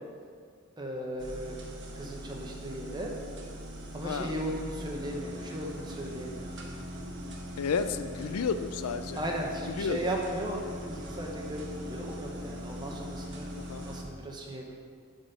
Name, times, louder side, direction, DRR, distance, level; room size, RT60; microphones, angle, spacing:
voice 1, 0.8-1.6 1.9-3.1 3.9-6.5 9.1-13.5 13.8-14.7, right 1 dB, 20° right, 0 dB, 0.8 m, -36 dB
sound 1, 1.2-14.0, equal, 50° right, 1.1 m, -41 dB
voice 2, 4.0-4.4 7.6-9.2 9.7-10.1 13.7-13.8, left 5 dB, 85° left, 10 dB, 0.4 m, -32 dB
8.0 x 4.1 x 6.5 m, 2.1 s
head